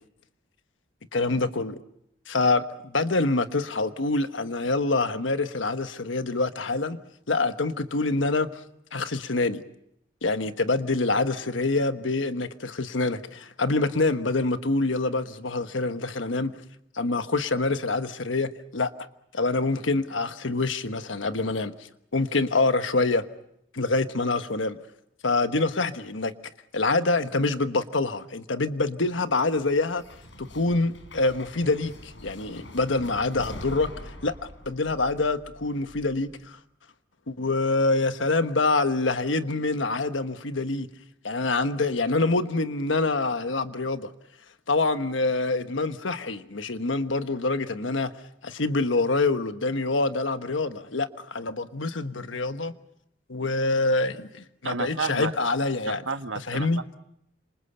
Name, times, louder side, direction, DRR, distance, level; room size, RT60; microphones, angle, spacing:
voice 1, 1.1-1.8 2.3-7.0 7.3-8.5 8.9-9.6 10.2-16.6 16.9-18.9 19.3-21.7 22.1-23.3 23.7-24.8 25.2-26.3 26.7-30.0 30.4-33.9 34.2-36.6 37.3-40.9 41.2-44.1 44.7-48.1 48.4-52.7 53.3-56.0 56.5-56.8, left 3 dB, 90° left, 1.3 m, -26 dB
sound 1, 29.1-36.4, left 1 dB, 75° left, 4.7 m, -44 dB
voice 2, 54.6-55.3 55.9-56.7, right 4 dB, 85° right, 1.5 m, -31 dB
30.0 x 27.0 x 5.7 m
head